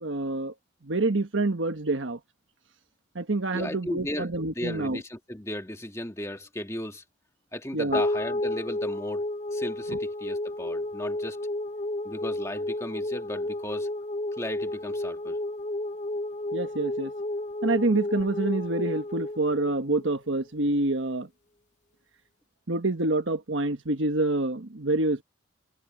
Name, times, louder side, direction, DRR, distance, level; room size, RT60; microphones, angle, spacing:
voice 1, 0.0-0.5 0.8-2.2 3.1-5.0 7.7-8.0 9.9-10.0 16.5-17.1 17.6-21.3 22.7-25.2, right 2 dB, 80° right, 1.4 m, -27 dB
voice 2, 3.5-7.0 7.5-9.2 9.5-11.4 12.0-13.9 14.4-15.4, left 1 dB, 15° left, 2.0 m, -36 dB
sound 1, 7.9-20.4, left 1 dB, 35° left, 1.0 m, -32 dB
head